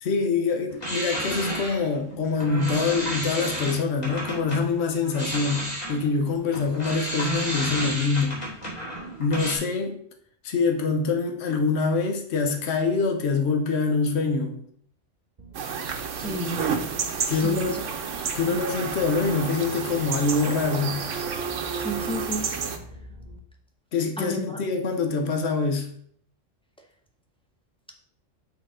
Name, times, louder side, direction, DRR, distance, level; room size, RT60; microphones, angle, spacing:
voice 1, 0.0-8.4 9.2-10.0 10.4-14.7 17.3-17.7 18.3-21.0 23.9-25.9, left 4 dB, 60° left, 1.1 m, -25 dB
sound 1, 0.7-4.6 5.0-9.6, right 1 dB, 30° left, 2.6 m, -32 dB
sound 2, 15.4-23.4, right 3 dB, 40° right, 1.1 m, -44 dB
sound 3, 15.5-22.8, right 6 dB, 80° right, 1.2 m, -30 dB
voice 2, 16.2-16.6 17.3-17.8 18.4-18.6 21.8-22.5 24.2-24.6, equal, 5° left, 0.8 m, -32 dB
6.6 x 3.9 x 5.0 m
omnidirectional pair, 1.3 m